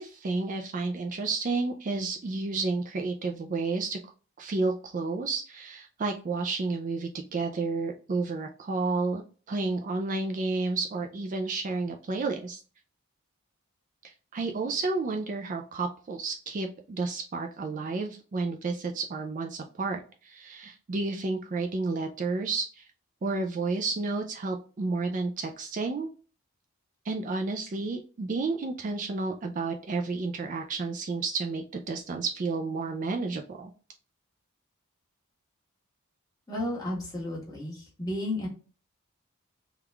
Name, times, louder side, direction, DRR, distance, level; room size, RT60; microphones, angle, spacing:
voice 1, 0.0-4.0 4.4-9.2 9.5-12.6 14.0-22.9 23.2-26.1 27.1-33.7, right 3 dB, 35° right, 4 dB, 0.3 m, -31 dB
voice 2, 36.5-38.5, left 1 dB, 15° left, -4 dB, 1.3 m, -33 dB
3.5 x 2.3 x 3.2 m, 0.37 s
head